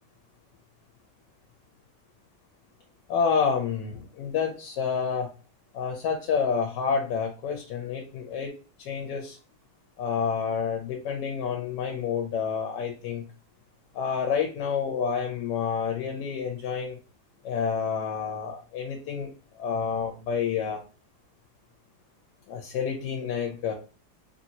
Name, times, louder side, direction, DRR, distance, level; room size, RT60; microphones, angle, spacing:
voice 1, 3.1-5.3 5.7-8.5 8.8-9.4 10.0-13.2 13.9-17.0 17.4-20.8 22.5-23.7, left 6 dB, 80° left, 2 dB, 1.2 m, -29 dB
2.9 x 2.7 x 2.7 m, 0.35 s
omnidirectional pair, 1.9 m